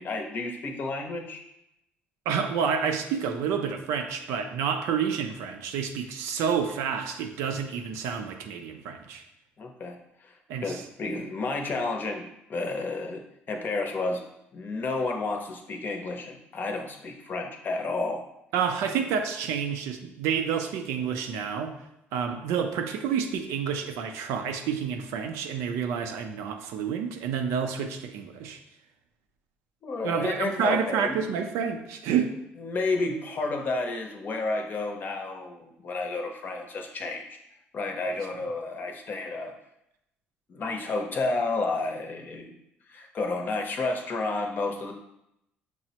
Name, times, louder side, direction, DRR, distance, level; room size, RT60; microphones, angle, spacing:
voice 1, 0.0-1.4 9.6-10.4 10.6-13.2 13.5-14.2 14.5-18.2 29.8-31.2 32.6-37.4 37.7-39.5 40.5-42.6 42.9-44.9, left 3 dB, 45° left, 3 dB, 0.6 m, -31 dB
voice 2, 2.3-9.2 10.5-10.8 18.5-21.7 22.1-28.6 30.0-32.3, right 7 dB, 85° right, 6 dB, 0.4 m, -29 dB
6.0 x 2.0 x 2.8 m, 0.83 s
cardioid pair, 85°, 5 cm